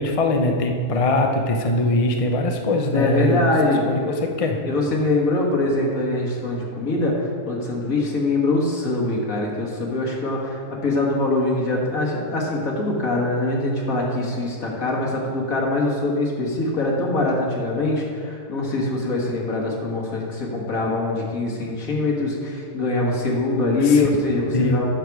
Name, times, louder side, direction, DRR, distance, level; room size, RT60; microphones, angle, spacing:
voice 1, 0.0-3.4 3.9-4.6 23.8-24.1 24.5-24.8, left 2 dB, 35° left, 3 dB, 0.6 m, -22 dB
voice 2, 2.9-4.1 4.7-24.9, left 2 dB, 70° left, -2 dB, 2.1 m, -23 dB
11.5 x 6.8 x 4.7 m, 2.2 s
omnidirectional pair, 1.5 m